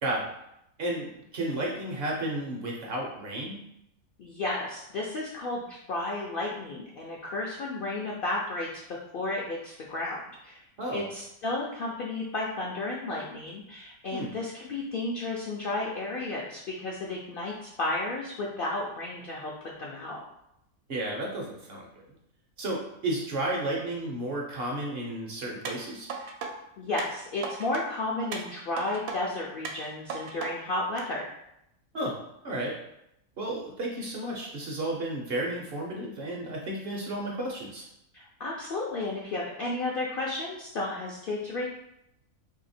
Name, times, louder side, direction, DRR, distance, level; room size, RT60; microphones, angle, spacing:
voice 1, 0.8-3.6 10.8-11.0 14.1-14.3 20.9-22.1 22.6-26.1 31.9-32.2 32.4-32.8 33.4-37.8, right 1 dB, 55° right, -2 dB, 0.7 m, -32 dB
voice 2, 4.2-10.6 10.9-20.2 26.8-31.3 38.1-41.7, left 2 dB, 65° left, -3 dB, 0.5 m, -33 dB
sound 1, 25.7-26.5 27.0-27.8 28.3-29.2 29.7-30.5 31.0-31.1, right 5 dB, 80° right, 1.0 m, -36 dB
2.8 x 2.7 x 4.1 m, 0.81 s
omnidirectional pair, 1.4 m